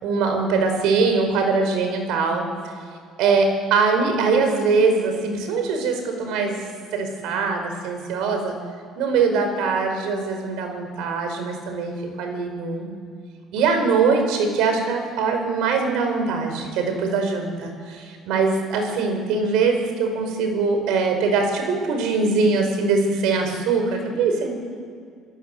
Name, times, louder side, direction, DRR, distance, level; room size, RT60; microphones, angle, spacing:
voice 1, 0.0-2.5 3.2-6.6 6.9-8.6 9.0-12.9 13.5-24.5, right 4 dB, 75° right, 5 dB, 5.4 m, -22 dB
28.0 x 16.5 x 8.2 m, 2.1 s
supercardioid pair, 85°, 0 cm